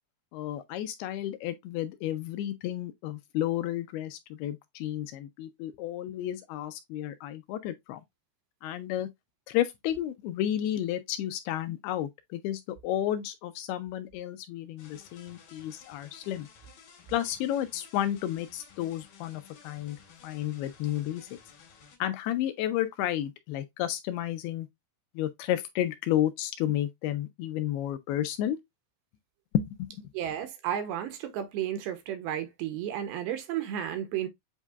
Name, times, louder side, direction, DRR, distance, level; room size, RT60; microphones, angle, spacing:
voice 1, 0.3-8.0 8.6-9.1 9.5-16.5 17.1-20.0 20.2-21.3 22.0-24.7 25.2-28.6 29.5-29.9, left 12 dB, 80° left, 2.4 m, -32 dB
sound 1, 14.8-22.0, left 6 dB, 65° left, 2.8 m, -55 dB
voice 2, 30.1-34.3, right 10 dB, 85° right, 2.5 m, -33 dB
8.1 x 2.7 x 2.3 m
omnidirectional pair, 4.8 m